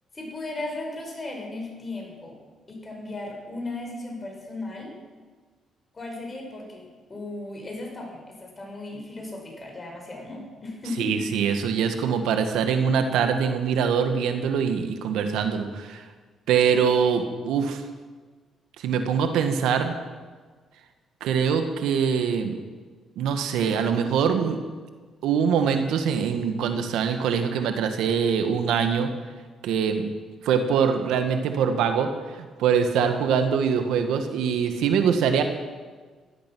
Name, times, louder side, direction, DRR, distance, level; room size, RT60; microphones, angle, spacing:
voice 1, 0.1-2.4 2.7-5.0 5.9-11.2, left 2 dB, 30° left, 0 dB, 5.6 m, -36 dB
voice 2, 11.0-16.0 16.5-17.8 18.8-19.9 21.2-22.6 23.2-24.6 25.2-29.1 29.6-30.1 30.4-35.4, right 7 dB, 90° right, 7 dB, 1.5 m, -23 dB
17.0 x 12.5 x 6.1 m, 1.4 s
cardioid pair, 90°, 0 cm